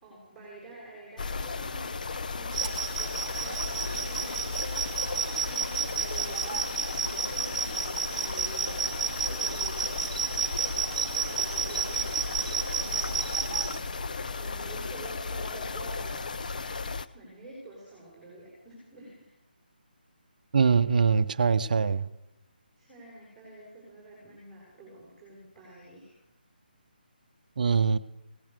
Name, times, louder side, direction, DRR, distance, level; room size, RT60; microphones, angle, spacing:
voice 1, 0.0-6.7 7.3-10.0 11.1-16.2 17.1-19.3 22.8-26.2, right 2 dB, 5° left, -7 dB, 4.4 m, -48 dB
sound 1, 1.2-17.1, left 4 dB, 50° left, 0.7 m, -35 dB
sound 2, 2.5-13.8, right 6 dB, 35° right, 1.2 m, -32 dB
voice 2, 20.5-22.0 27.6-28.0, right 5 dB, 55° right, 14 dB, 0.7 m, -23 dB
17.5 x 10.5 x 6.7 m, 0.90 s
hypercardioid pair, 170°, 5 cm